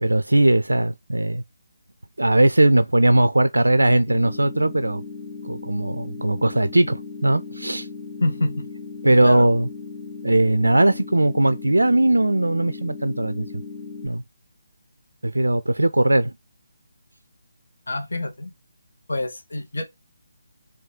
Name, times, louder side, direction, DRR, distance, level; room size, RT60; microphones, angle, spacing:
voice 1, 0.0-1.4 2.2-5.0 5.4-7.9 9.0-9.7 10.2-13.5 14.0-14.2 15.2-16.3, right 1 dB, 80° right, 0.3 m, -19 dB
sound 1, 4.1-14.1, left 4 dB, 20° left, 0.9 m, -37 dB
voice 2, 8.2-8.7 9.2-9.5 17.9-18.5 19.1-20.1, left 2 dB, 70° left, 1.1 m, -27 dB
3.9 x 2.7 x 3.6 m
figure-of-eight pair, 150°, 0 cm